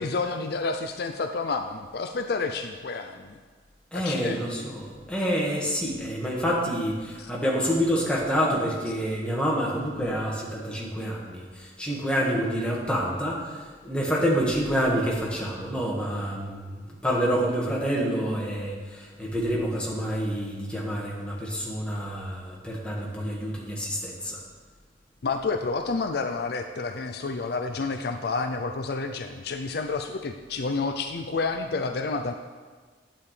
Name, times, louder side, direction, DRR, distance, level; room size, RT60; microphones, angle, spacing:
voice 1, 0.0-3.4 3.9-4.7 7.2-7.3 25.2-32.3, left 4 dB, 60° left, 6 dB, 0.4 m, -30 dB
voice 2, 3.9-24.4, equal, 5° left, -4 dB, 1.7 m, -28 dB
11.0 x 8.8 x 3.3 m, 1.5 s
head